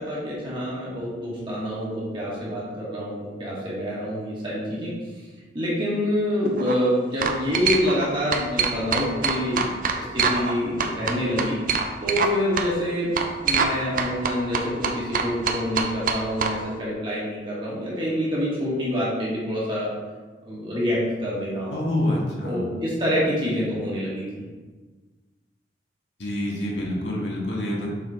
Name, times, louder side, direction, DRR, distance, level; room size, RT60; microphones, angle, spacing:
voice 1, 0.0-5.2 5.5-9.6 9.9-11.6 12.0-13.1 13.4-19.9 20.5-21.8 22.4-24.4, equal, 25° right, -7 dB, 1.9 m, -26 dB
sound 1, 6.4-6.7 7.2-8.1 8.3-10.5 10.8-12.3 12.6-12.7 13.2-13.7 14.0-16.5, right 5 dB, 45° right, 0.5 m, -24 dB
voice 2, 21.7-22.6 26.2-27.9, left 1 dB, 70° left, -4 dB, 1.7 m, -26 dB
7.1 x 4.2 x 4.4 m, 1.3 s
head